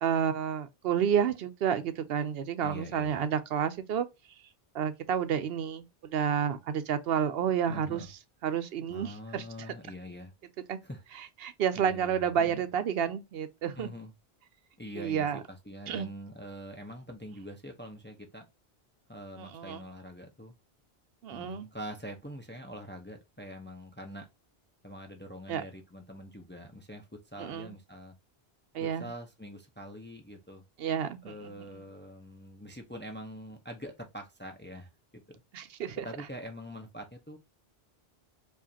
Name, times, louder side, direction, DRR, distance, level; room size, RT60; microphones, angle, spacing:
voice 1, 0.0-4.1 4.7-8.0 8.4-9.4 10.7-10.8 11.4-13.9 15.0-15.4 15.9-16.1 19.4-19.8 21.2-21.7 25.5-25.6 27.4-27.7 28.7-29.1 30.8-31.8 35.5-36.1, right 8 dB, 75° right, 0.8 m, -30 dB
voice 2, 2.6-3.2 7.7-8.1 8.9-10.3 10.8-11.0 11.7-12.6 13.8-14.1 14.8-18.5 19.1-20.5 21.3-24.3 24.8-28.2 28.8-30.6 31.2-35.2 36.0-37.4, equal, 15° left, 0.5 m, -44 dB
4.8 x 2.5 x 2.6 m
omnidirectional pair, 1.0 m